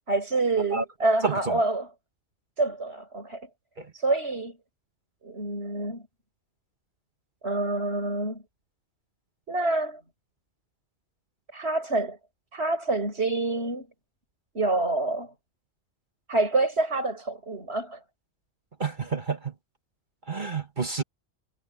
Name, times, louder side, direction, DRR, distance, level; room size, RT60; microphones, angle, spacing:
voice 1, 0.1-1.9 2.6-3.5 3.9-4.6 5.2-6.0 7.4-8.4 9.5-10.0 11.5-12.2 12.5-13.9 14.5-15.3 16.3-18.0, right 2 dB, 60° right, 5.9 m, -27 dB
voice 2, 18.8-19.5 20.3-21.0, right 5 dB, 45° right, 1.9 m, -29 dB
omnidirectional pair, 1.2 m